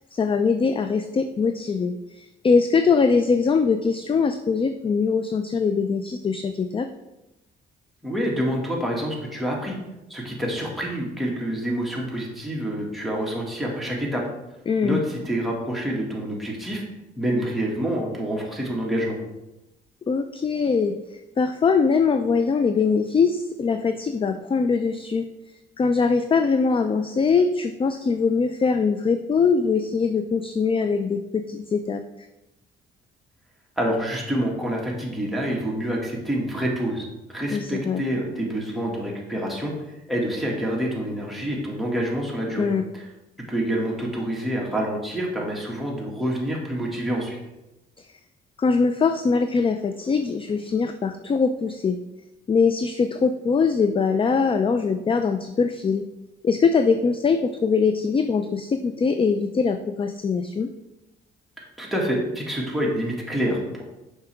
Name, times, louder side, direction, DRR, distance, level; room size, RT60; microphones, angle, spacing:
voice 1, 0.1-6.9 14.7-15.0 20.1-25.2 25.8-32.0 37.5-38.0 42.6-42.9 48.0-48.1 48.6-52.0 52.5-56.0 56.4-60.7, left 5 dB, 25° left, 8 dB, 0.4 m, -22 dB
voice 2, 8.0-9.8 10.1-14.2 14.8-16.8 17.2-19.2 33.8-43.0 43.5-47.4 61.8-63.8, equal, ahead, -3 dB, 1.9 m, -27 dB
6.9 x 5.6 x 3.4 m, 0.96 s
cardioid pair, 90°, 20 cm